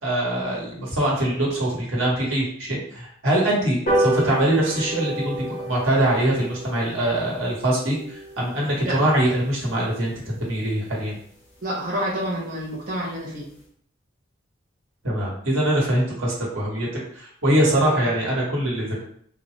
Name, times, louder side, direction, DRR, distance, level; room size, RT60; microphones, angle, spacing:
voice 1, 0.0-11.2 15.0-16.9 17.1-19.0, right 1 dB, 80° right, -4 dB, 1.3 m, -23 dB
sound 1, 3.9-10.6 11.0-11.1 11.4-11.6 11.8-11.9 12.2-12.3 12.6-12.9 13.3-13.4, right 1 dB, 45° left, 1.3 m, -30 dB
voice 2, 11.6-13.5 17.9-18.0, right 1 dB, 45° right, -6 dB, 0.7 m, -28 dB
3.8 x 2.3 x 3.1 m, 0.62 s
head